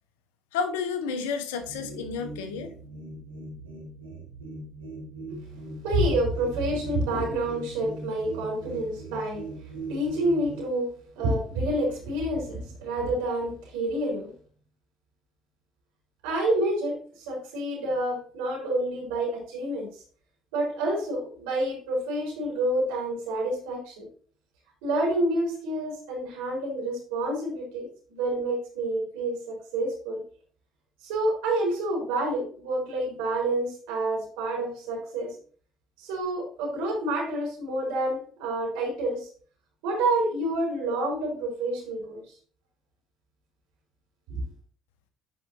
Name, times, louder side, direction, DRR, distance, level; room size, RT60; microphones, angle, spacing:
voice 1, 0.5-2.7, left 5 dB, 75° left, 9 dB, 0.8 m, -31 dB
sound 1, 1.6-10.6, right 2 dB, 90° right, 2.3 m, -40 dB
voice 2, 5.8-9.4 9.9-14.3 16.2-20.0 20.5-24.1 24.8-30.2 31.0-35.4 36.0-39.3 39.8-42.2 44.3-44.4, right 1 dB, 75° right, -2 dB, 3.5 m, -28 dB
10.5 x 4.9 x 2.9 m, 0.43 s
hypercardioid pair, 55°, 0 cm